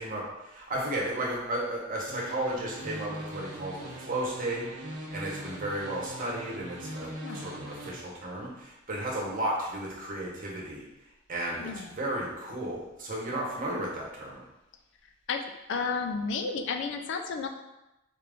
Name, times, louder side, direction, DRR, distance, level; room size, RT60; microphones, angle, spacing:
voice 1, 0.0-10.8 11.3-14.4, right 1 dB, 45° right, -3 dB, 0.9 m, -34 dB
sound 1, 2.1-7.9, equal, 85° right, 0.9 m, -41 dB
voice 2, 11.6-12.0 13.7-13.9 15.3-15.4 15.7-17.5, left 5 dB, 60° left, 5 dB, 0.4 m, -32 dB
4.4 x 2.4 x 3.4 m, 0.95 s
head